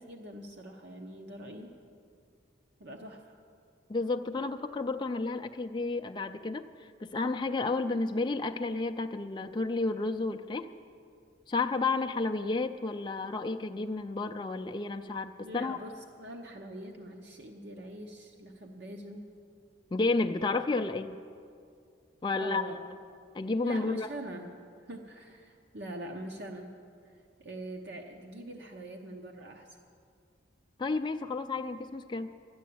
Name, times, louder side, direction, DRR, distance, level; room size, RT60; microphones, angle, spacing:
voice 1, 0.0-1.7 2.8-3.4 15.4-19.3 22.3-22.8 23.6-26.8 27.0-29.8, right 1 dB, 60° right, 2 dB, 1.0 m, -43 dB
voice 2, 3.9-10.7 11.5-15.8 19.9-21.2 22.2-22.6 23.3-24.1 30.8-32.3, left 3 dB, 25° left, 6 dB, 0.4 m, -31 dB
12.5 x 11.0 x 8.5 m, 2.4 s
head